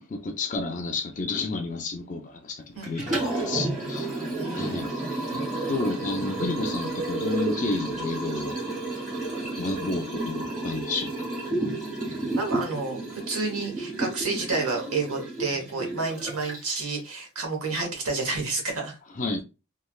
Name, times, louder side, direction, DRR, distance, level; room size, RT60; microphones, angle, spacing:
voice 1, 0.1-4.1 4.5-4.9 5.3-8.6 9.6-11.3 19.2-19.4, left 3 dB, 35° left, 0.4 m, -31 dB
Liquid, 2.8-16.9, right 2 dB, 35° right, 1.7 m, -31 dB
voice 2, 4.4-4.9 12.1-13.0 13.3-19.0, right 3 dB, 75° right, 1.0 m, -30 dB
3.1 x 2.4 x 2.3 m
head